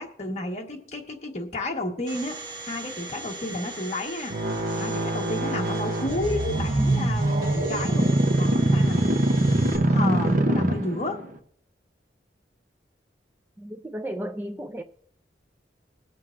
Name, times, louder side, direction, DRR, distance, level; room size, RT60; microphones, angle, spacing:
voice 1, 0.0-2.4 2.6-4.3 4.7-9.0 9.7-11.2, left 1 dB, 40° left, 1.3 m, -31 dB
Domestic sounds home sounds, 2.1-9.8, right 2 dB, 30° right, 2.8 m, -40 dB
sound 1, 4.3-11.3, right 1 dB, 50° right, 0.8 m, -23 dB
voice 2, 13.6-14.8, right 1 dB, 10° right, 0.4 m, -34 dB
21.0 x 7.5 x 2.5 m
head